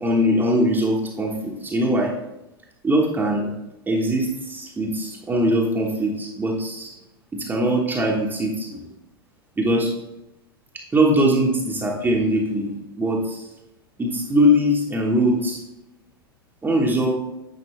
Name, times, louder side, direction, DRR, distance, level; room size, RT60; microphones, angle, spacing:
voice 1, 0.0-2.1 2.8-3.5 3.9-6.9 7.3-8.8 9.6-9.9 10.9-13.5 14.0-15.6 16.6-17.1, equal, 15° right, -2 dB, 1.2 m, -21 dB
9.5 x 5.1 x 3.2 m, 0.93 s
figure-of-eight pair, 90°, 13 cm